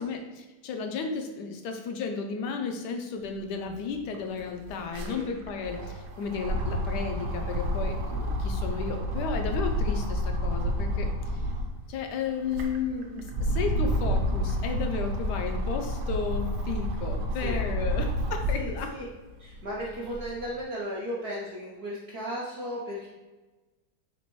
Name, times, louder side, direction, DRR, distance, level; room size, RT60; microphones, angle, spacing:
voice 1, 0.0-11.1 11.9-18.9, left 5 dB, 80° left, 4 dB, 1.2 m, -33 dB
sound 1, 3.6-3.7 4.0-11.8 12.3-18.8 19.3-20.4, equal, 85° right, 1.2 m, -30 dB
voice 2, 4.9-5.3 17.3-17.6 18.5-19.1 19.4-23.1, equal, 65° right, -4 dB, 0.6 m, -36 dB
4.1 x 3.4 x 3.0 m, 1.2 s
omnidirectional pair, 1.8 m